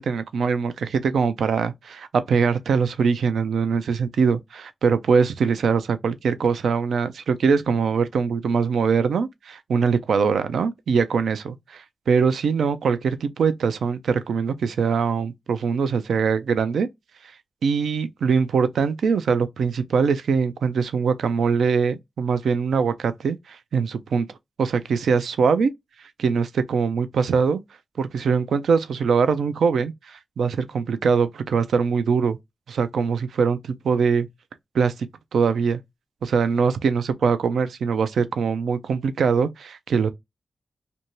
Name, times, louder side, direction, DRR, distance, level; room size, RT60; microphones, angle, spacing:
voice 1, 0.0-16.9 17.6-24.3 24.6-25.7 26.2-27.6 28.0-32.4 32.7-34.3 34.7-35.1 35.3-35.8 36.2-40.1, right 5 dB, 85° right, 0.3 m, -22 dB
2.5 x 2.2 x 2.9 m
cardioid pair, 45°, 0 cm